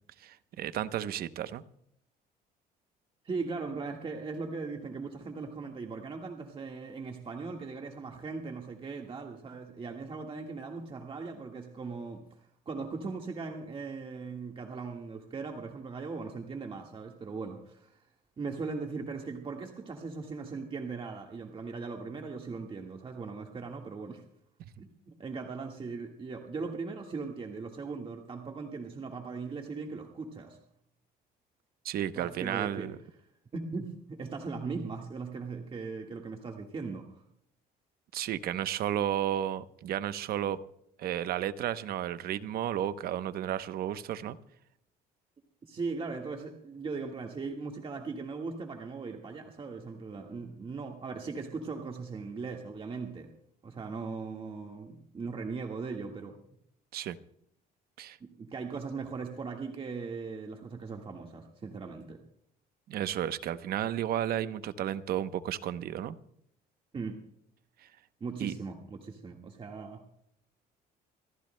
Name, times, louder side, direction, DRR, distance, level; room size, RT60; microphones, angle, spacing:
voice 1, 0.2-1.6 31.8-32.9 38.1-40.6 41.0-44.4 56.9-57.2 58.0-58.2 62.9-66.2 67.8-67.9 68.4-68.5, right 11 dB, 65° right, 13 dB, 0.8 m, -33 dB
voice 2, 3.2-18.1 18.4-24.2 24.8-30.6 32.1-32.9 33.5-37.2 45.6-53.3 53.6-56.4 58.2-62.2 66.9-67.2 68.2-70.0, right 4 dB, 30° right, 2 dB, 1.7 m, -39 dB
27.0 x 15.5 x 2.2 m, 0.71 s
cardioid pair, 110°, 17 cm